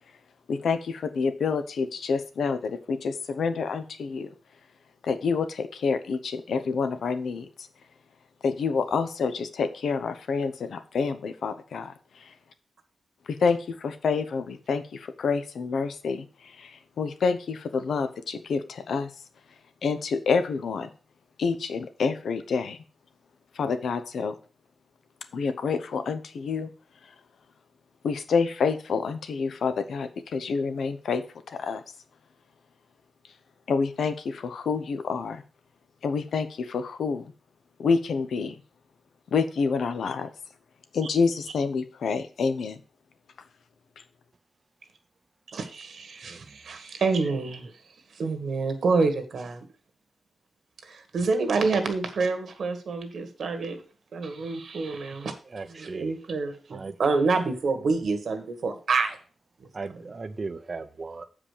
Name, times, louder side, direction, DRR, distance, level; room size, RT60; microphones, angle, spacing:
voice 1, 0.5-4.3 5.0-7.5 8.4-11.9 13.3-16.3 16.6-19.1 19.8-20.9 21.4-22.8 23.6-24.3 25.3-26.7 28.0-31.2 31.6-31.8 33.7-35.4 36.0-37.3 37.8-38.6 39.3-40.3 40.9-42.8, left 5 dB, 85° left, 10 dB, 0.9 m, -28 dB
voice 2, 45.5-47.7 48.1-49.6 50.8-53.8 54.1-55.3 55.8-59.2, right 4 dB, 70° right, 7 dB, 1.5 m, -27 dB
voice 3, 46.2-46.6 55.2-56.1 56.7-56.9 59.7-61.2, right 4 dB, 35° right, 8 dB, 0.6 m, -37 dB
7.5 x 5.1 x 6.5 m, 0.39 s
wide cardioid pair, 145°, 0 cm